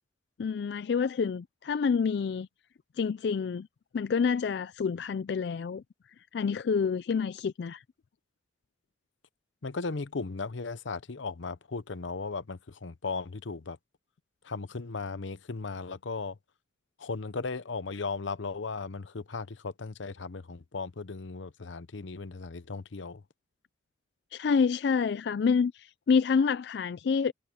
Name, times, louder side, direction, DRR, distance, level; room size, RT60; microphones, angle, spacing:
voice 1, 0.4-2.5 3.0-3.7 3.9-5.8 6.2-7.8 24.3-27.3, left 5 dB, 60° left, 0.3 m, -28 dB
voice 2, 9.6-13.8 14.4-16.4 17.0-23.2, left 4 dB, 80° left, 0.8 m, -36 dB
head